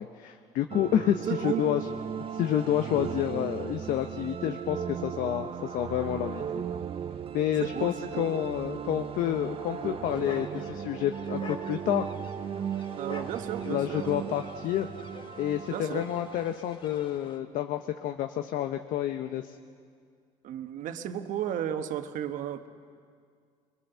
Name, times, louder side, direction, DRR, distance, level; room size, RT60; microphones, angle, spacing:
voice 1, 0.0-1.9 2.3-6.6 7.3-12.1 13.7-14.9 15.4-19.6, left 11 dB, 65° left, 7 dB, 0.8 m, -29 dB
sound 1, 0.7-16.5, right 8 dB, 40° right, 0.8 m, -37 dB
voice 2, 1.3-1.7 2.8-3.1 7.6-8.3 13.0-14.4 15.7-16.1 20.4-22.7, right 10 dB, 65° right, 8 dB, 1.2 m, -34 dB
sound 2, 10.1-17.4, left 5 dB, 35° left, 1.6 m, -47 dB
23.0 x 21.5 x 6.9 m, 2.1 s
cardioid pair, 105°, 14 cm